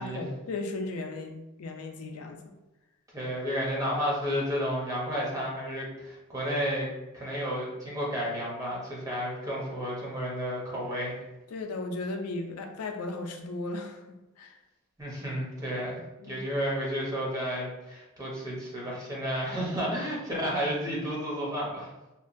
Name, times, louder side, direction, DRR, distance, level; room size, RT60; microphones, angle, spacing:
voice 1, 0.0-2.4 11.5-14.6 16.2-16.4, left 2 dB, 80° left, 3 dB, 0.4 m, -36 dB
voice 2, 3.1-6.9 7.1-11.2 15.0-21.9, equal, 15° right, -5 dB, 0.7 m, -32 dB
2.9 x 2.2 x 2.5 m, 1.0 s
head